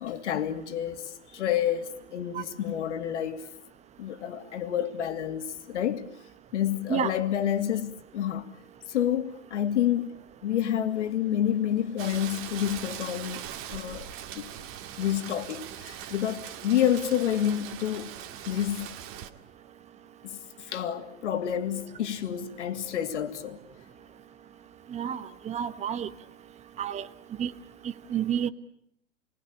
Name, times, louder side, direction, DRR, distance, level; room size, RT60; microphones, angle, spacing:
voice 1, 0.0-3.5 4.0-6.1 6.5-8.5 8.9-10.1 10.4-14.1 14.4-14.5 15.0-19.0 20.2-23.6, left 10 dB, 65° left, 2.8 m, -29 dB
Rain, 12.0-19.3, right 10 dB, 35° right, 2.1 m, -41 dB
voice 2, 24.9-26.1 26.8-27.1 27.4-27.5 27.8-28.5, right 9 dB, 15° right, 1.1 m, -30 dB
29.0 x 21.0 x 8.7 m
hypercardioid pair, 125°, 38 cm